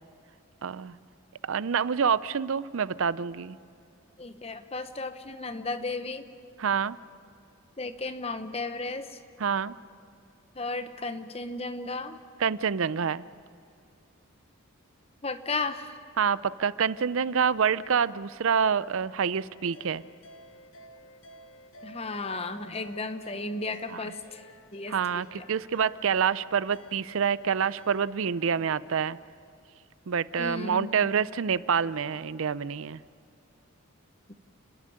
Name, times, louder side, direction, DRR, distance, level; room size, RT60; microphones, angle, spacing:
voice 1, 0.6-1.0 1.4-3.6 6.6-7.0 9.4-9.8 12.4-13.2 16.2-20.0 23.9-24.0 24.9-29.2 30.1-33.0, right 6 dB, 70° right, 18 dB, 0.5 m, -27 dB
voice 2, 4.2-6.2 7.8-9.2 10.5-12.2 15.2-16.0 21.8-24.5 24.7-25.2 30.4-30.9 34.3-34.4, left 3 dB, 30° left, 10 dB, 0.9 m, -34 dB
sound 1, 19.5-28.1, left 2 dB, 70° left, 0.9 m, -51 dB
30.0 x 11.0 x 10.0 m, 2.4 s
head